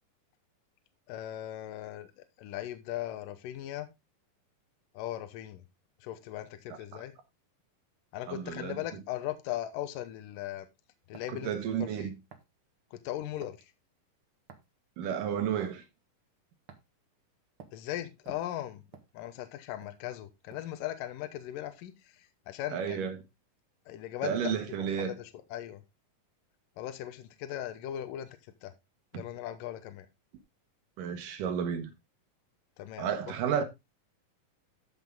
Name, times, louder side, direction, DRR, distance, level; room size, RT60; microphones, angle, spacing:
voice 1, 1.1-2.1 2.4-3.9 4.9-5.6 6.0-7.2 8.1-10.7 11.1-11.6 12.0-12.1 12.9-13.7 17.7-18.8 19.1-23.1 23.9-25.8 26.8-28.7 29.1-30.1 32.8-33.1, left 13 dB, 75° left, 2.5 m, -38 dB
voice 2, 6.7-7.0 8.3-8.8 11.3-12.1 15.0-15.8 22.7-23.2 24.2-25.1 29.1-29.2 31.0-31.9 33.0-33.6, right 8 dB, 70° right, 2.8 m, -32 dB
sound 1, 11.1-11.4 12.3-12.5 13.4-13.6 14.5-14.8 15.6-15.8 16.7-17.0 17.6-17.8 18.2-19.5 19.8-20.0 20.5-20.8, right 6 dB, 50° right, 1.7 m, -52 dB
13.5 x 5.9 x 3.6 m
omnidirectional pair, 4.1 m